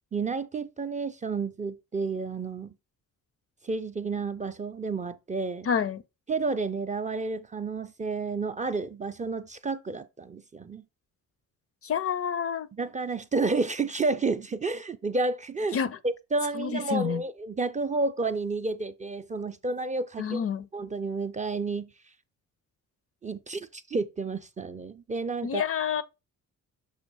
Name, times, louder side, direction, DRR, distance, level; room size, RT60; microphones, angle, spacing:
voice 1, 0.1-2.7 3.6-5.7 6.3-10.8 12.8-15.8 16.0-20.4 20.7-21.9 23.2-25.6, right 3 dB, 25° right, 0.4 m, -30 dB
voice 2, 5.7-6.0 11.8-12.7 15.7-16.0 16.5-17.2 20.2-20.7 25.4-26.0, left 7 dB, 45° left, 0.4 m, -28 dB
6.2 x 2.8 x 5.3 m
cardioid pair, 115°, 33 cm